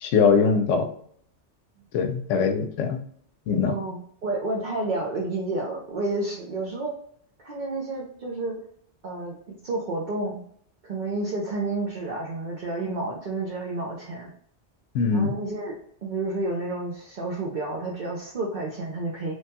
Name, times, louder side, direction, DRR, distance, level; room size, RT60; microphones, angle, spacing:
voice 1, 0.0-0.9 1.9-3.0 3.5-3.7 14.9-15.3, left 5 dB, 85° left, 6 dB, 0.9 m, -22 dB
voice 2, 3.7-6.9 7.4-8.6 9.0-10.4 10.8-14.3 15.1-19.4, right 2 dB, 50° right, -3 dB, 0.6 m, -30 dB
3.1 x 2.2 x 2.7 m, 0.62 s
omnidirectional pair, 1.2 m